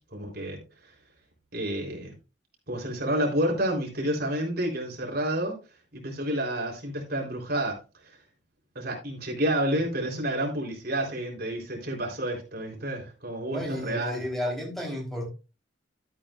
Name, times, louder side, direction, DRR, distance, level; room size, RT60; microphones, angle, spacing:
voice 1, 0.1-0.6 1.5-2.1 2.7-5.6 5.9-7.8 8.8-14.2, right 1 dB, 55° right, 3.7 m, -29 dB
voice 2, 13.5-15.3, left 1 dB, ahead, 3.5 m, -32 dB
13.0 x 8.6 x 2.5 m
head